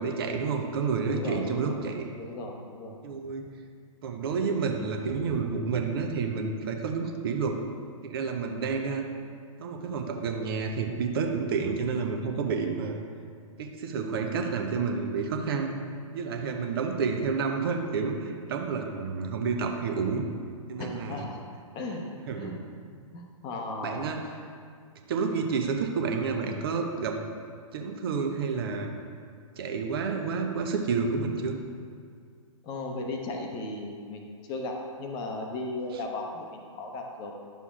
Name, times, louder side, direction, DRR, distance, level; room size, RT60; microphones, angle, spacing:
voice 1, 0.0-2.1 3.0-3.5 4.0-7.6 8.0-9.0 9.6-13.3 13.6-15.7 16.1-20.2 20.7-21.3 22.3-22.6 23.8-24.3 25.1-27.2 27.7-28.9 29.6-31.5, right 5 dB, 45° right, 4 dB, 0.7 m, -30 dB
voice 2, 1.1-1.8 2.2-3.0 20.8-21.4 21.7-22.6 23.1-24.0 32.6-34.2 34.5-37.3, left 2 dB, 25° left, 2 dB, 0.8 m, -36 dB
11.0 x 6.8 x 2.4 m, 2.1 s
figure-of-eight pair, 110°, 18 cm